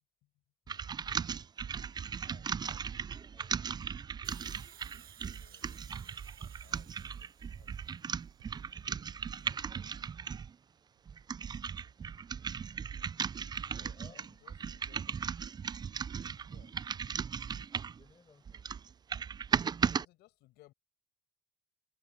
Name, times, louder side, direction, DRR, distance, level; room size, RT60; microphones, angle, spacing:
sound 1, 0.7-10.5 11.1-18.0 18.5-20.0, right 6 dB, 25° right, 0.4 m, -37 dB
Fireworks, 1.3-4.9 5.4-5.5 6.0-6.4 6.8-11.7 13.8-15.1, right 18 dB, 90° right, 7.0 m, -73 dB
voice 1, 2.1-2.5 5.3-7.2 7.5-8.0 13.7-15.2 16.2-16.8 20.0-20.7, left 17 dB, 85° left, 5.8 m, -63 dB
voice 2, 3.1-3.6 3.9-4.1 12.7-14.3 17.7-18.7, left 4 dB, 25° left, 4.9 m, -64 dB
Hiss, 4.2-8.4 9.4-9.5, right 11 dB, 60° right, 6.0 m, -58 dB
cardioid pair, 110°, 17 cm